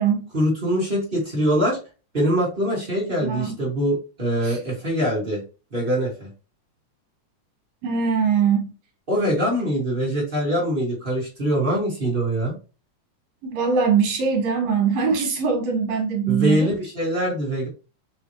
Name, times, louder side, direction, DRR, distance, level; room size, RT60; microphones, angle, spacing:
voice 1, 0.3-1.8 2.1-5.4 5.7-6.3 9.1-12.5 16.3-17.7, equal, 35° right, 0.8 m, -23 dB
voice 2, 3.2-3.5 4.4-4.6 7.8-8.7 13.4-16.7, right 6 dB, 65° right, 2.1 m, -22 dB
5.5 x 3.0 x 2.9 m
omnidirectional pair, 3.5 m